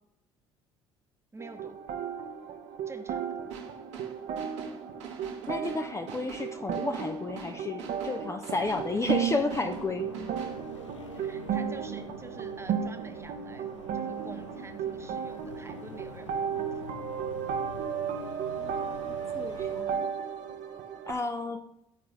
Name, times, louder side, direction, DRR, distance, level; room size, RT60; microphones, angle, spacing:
voice 1, 1.3-1.8 2.9-3.3 11.1-16.8, right 3 dB, 15° right, 6 dB, 1.0 m, -48 dB
sound 1, 1.4-21.1, right 8 dB, 55° right, 0.9 m, -34 dB
sound 2, 3.5-10.6, right 5 dB, 80° right, 1.5 m, -45 dB
voice 2, 5.5-10.1 18.6-20.1 21.1-21.6, left 3 dB, 20° left, 6 dB, 0.5 m, -32 dB
sound 3, 8.5-19.8, left 7 dB, 90° left, 0.5 m, -48 dB
12.5 x 4.7 x 3.1 m, 0.83 s
hypercardioid pair, 60°, 15 cm